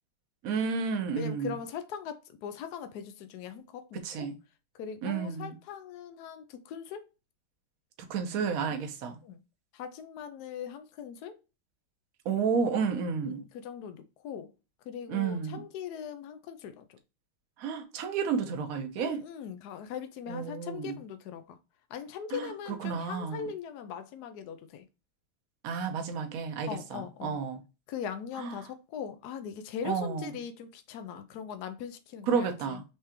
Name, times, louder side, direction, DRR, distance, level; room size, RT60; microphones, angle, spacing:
voice 1, 0.4-1.5 4.0-4.4 5.0-5.6 8.1-9.2 12.2-13.4 15.1-15.6 17.6-19.2 20.3-21.0 22.3-22.5 22.8-23.5 25.6-27.6 28.4-28.7 29.8-30.4 32.2-32.8, right 6 dB, 60° right, 0.9 m, -31 dB
voice 2, 1.2-4.3 4.8-7.0 9.2-9.4 9.7-11.4 13.2-14.5 14.9-16.8 19.0-21.6 21.9-24.8 26.7-27.4 27.9-32.8, left 8 dB, 90° left, 0.8 m, -40 dB
4.9 x 3.3 x 2.9 m
omnidirectional pair, 2.3 m